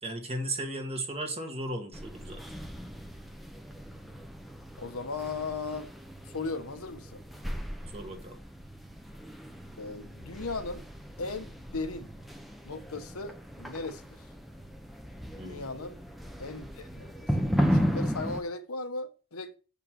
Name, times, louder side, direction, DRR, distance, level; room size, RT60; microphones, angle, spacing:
voice 1, 0.0-2.4 7.9-8.4 15.3-15.6, right 1 dB, 25° right, 1.6 m, -36 dB
sound 1, 1.9-18.4, equal, ahead, 0.8 m, -35 dB
voice 2, 4.8-5.9 6.2-7.2 9.8-10.8 11.2-12.1 12.6-14.0 15.4-16.0 16.4-17.3 17.7-19.5, left 3 dB, 75° left, 1.1 m, -37 dB
7.6 x 5.4 x 6.3 m
head